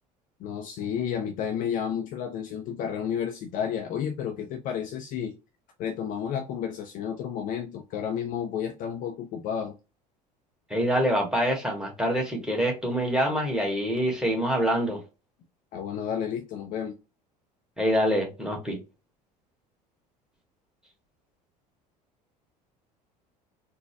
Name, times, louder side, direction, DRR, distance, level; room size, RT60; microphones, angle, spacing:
voice 1, 0.4-5.4 5.8-9.8 15.7-17.0, left 8 dB, 40° left, 0.5 m, -31 dB
voice 2, 10.7-15.0 17.8-18.8, equal, 5° right, 1.5 m, -25 dB
4.0 x 2.1 x 3.4 m
figure-of-eight pair, 65°, 21 cm